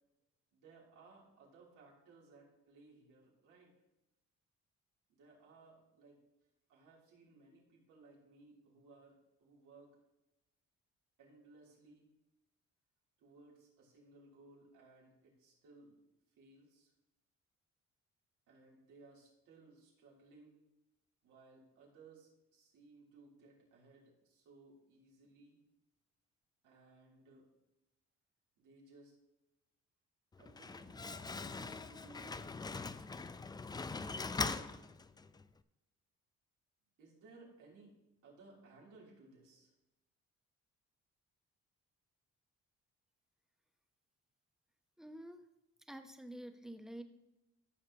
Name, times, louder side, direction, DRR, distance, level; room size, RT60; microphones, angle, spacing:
voice 1, 0.5-3.7 5.1-6.2 6.7-9.9 11.2-12.1 13.2-15.9 16.4-16.9 18.5-20.6 21.2-25.6 26.6-27.5 28.6-29.1 30.4-32.4 33.9-34.9 37.0-37.9 38.2-39.7, right 3 dB, 90° right, -4 dB, 3.2 m, -61 dB
Slam, 30.3-35.4, left 4 dB, 15° left, 0.3 m, -42 dB
voice 2, 45.0-45.4 45.9-47.0, right 1 dB, ahead, 7 dB, 0.8 m, -48 dB
14.0 x 6.6 x 2.9 m, 0.95 s
cardioid pair, 90°, 30 cm